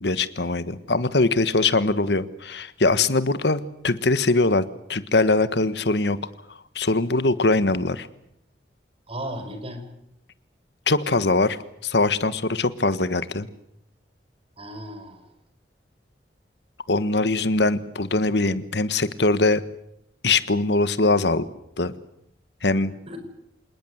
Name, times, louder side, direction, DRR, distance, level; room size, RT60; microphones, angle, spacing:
voice 1, 0.0-6.2 6.7-8.1 10.9-13.5 16.9-19.6 20.2-21.4 21.8-21.9 22.6-22.9, left 3 dB, 70° left, 14 dB, 1.4 m, -22 dB
voice 2, 9.1-9.8 14.6-15.3 23.1-23.2, right 1 dB, 35° right, 7 dB, 5.2 m, -35 dB
27.0 x 20.0 x 8.0 m, 0.75 s
head